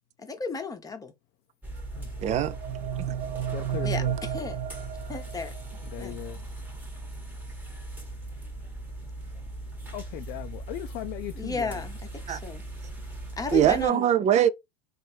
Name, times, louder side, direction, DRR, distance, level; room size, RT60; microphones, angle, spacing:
voice 1, 0.2-1.1 3.8-4.0 4.3-4.6 5.1-5.5 6.0-6.1 11.4-12.0 12.3-12.6 13.4-14.1, left 4 dB, 15° left, 0.9 m, -33 dB
sound 1, 1.6-13.9, right 2 dB, 10° right, 1.1 m, -39 dB
sound 2, 1.9-5.8, right 11 dB, 85° right, 0.6 m, -33 dB
voice 2, 2.2-2.6 12.3-12.4 13.5-14.5, right 10 dB, 35° right, 0.4 m, -22 dB
voice 3, 3.5-4.2 5.8-6.5 9.9-11.9, left 14 dB, 50° left, 0.4 m, -38 dB
3.1 x 2.6 x 4.3 m
supercardioid pair, 110°, 21 cm